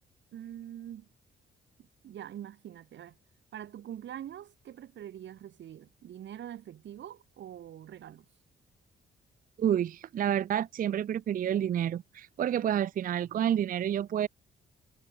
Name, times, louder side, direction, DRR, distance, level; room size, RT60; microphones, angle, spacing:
voice 1, 0.3-1.1 1.8-3.2 3.5-8.3, right 11 dB, 65° right, 1.8 m, -44 dB
voice 2, 9.6-14.3, right 10 dB, 45° right, 0.4 m, -29 dB
cardioid pair, 90°, 20 cm